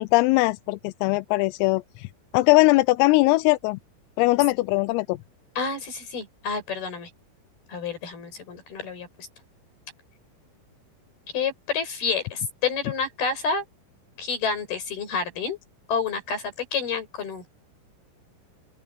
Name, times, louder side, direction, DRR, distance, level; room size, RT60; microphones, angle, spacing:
voice 1, 0.0-2.1 2.3-3.8 4.2-5.2, left 21 dB, 90° left, 3.4 m, -20 dB
voice 2, 5.6-7.1 7.7-9.3 11.3-13.7 14.2-15.6 15.9-17.5, left 5 dB, 50° left, 8.1 m, -29 dB
open air
omnidirectional pair, 5.9 m